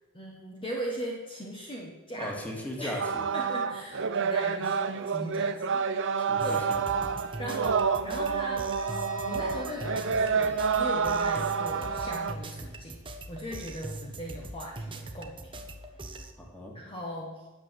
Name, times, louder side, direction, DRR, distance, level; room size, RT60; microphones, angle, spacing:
voice 1, 0.1-2.3 2.8-3.0 3.3-6.7 7.4-8.7 9.2-15.5 16.7-17.5, equal, 25° left, -2 dB, 1.5 m, -39 dB
voice 2, 2.2-3.3 6.2-7.1 16.4-16.7, equal, 5° left, -1 dB, 2.5 m, -38 dB
sound 1, 3.0-12.3, right 6 dB, 60° right, 0.7 m, -28 dB
sound 2, 6.4-16.3, right 2 dB, 25° right, 1.1 m, -42 dB
sound 3, 8.8-12.4, left 5 dB, 75° left, 4.0 m, -44 dB
11.0 x 8.0 x 7.4 m, 1.2 s
head